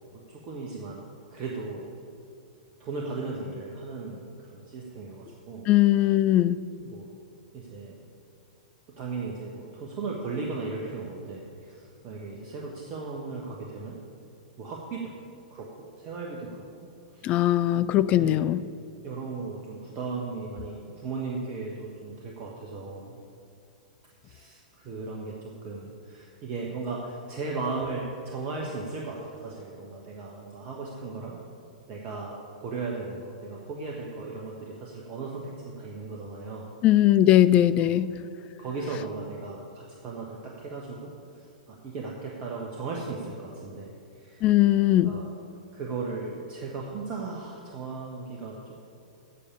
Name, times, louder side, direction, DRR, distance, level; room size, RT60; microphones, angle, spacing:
voice 1, 0.3-1.9 2.8-5.7 6.8-7.1 7.5-8.0 9.0-14.0 14.6-15.0 15.5-16.9 17.1-18.5 19.0-23.2 24.2-31.4 31.9-36.7 37.6-38.0 38.6-44.5 45.0-45.3 45.7-48.7, right 3 dB, 30° right, -2 dB, 1.3 m, -37 dB
voice 2, 5.7-6.7 17.2-18.6 36.8-38.2 44.4-45.2, left 13 dB, 30° left, 14 dB, 0.3 m, -20 dB
8.4 x 6.7 x 8.5 m, 2.5 s
figure-of-eight pair, 105°, 4 cm